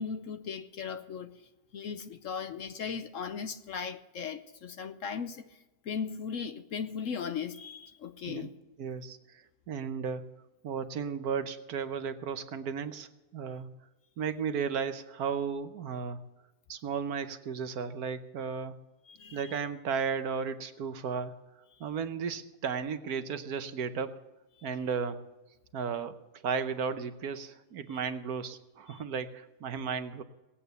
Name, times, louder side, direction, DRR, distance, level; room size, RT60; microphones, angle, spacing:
voice 1, 0.0-8.6 19.1-19.6 21.7-21.9 24.6-24.7 27.9-28.0 28.9-29.0, left 6 dB, 60° left, 1.0 m, -38 dB
voice 2, 8.8-10.2 10.6-13.7 14.2-16.2 16.7-18.8 19.3-21.3 21.8-24.2 24.6-25.2 25.7-26.1 26.4-30.2, right 6 dB, 70° right, 1.3 m, -34 dB
18.5 x 8.5 x 6.8 m
omnidirectional pair, 1.7 m